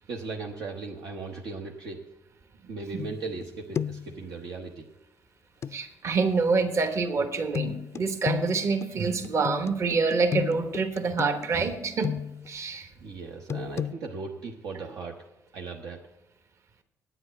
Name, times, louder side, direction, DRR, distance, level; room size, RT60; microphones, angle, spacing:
voice 1, 0.1-2.0 2.7-4.9 5.7-5.8 13.0-15.2 15.5-16.1, right 4 dB, 80° right, 0 dB, 1.0 m, -37 dB
sound 1, 3.0-3.5 3.8-4.2 5.6-5.8 7.5-12.5 13.5-13.9, left 8 dB, 45° left, 0.4 m, -33 dB
voice 2, 5.7-12.1 12.5-12.9, right 4 dB, 50° right, 7 dB, 1.2 m, -26 dB
9.1 x 8.1 x 8.0 m, 0.93 s
cardioid pair, 90°, 6 cm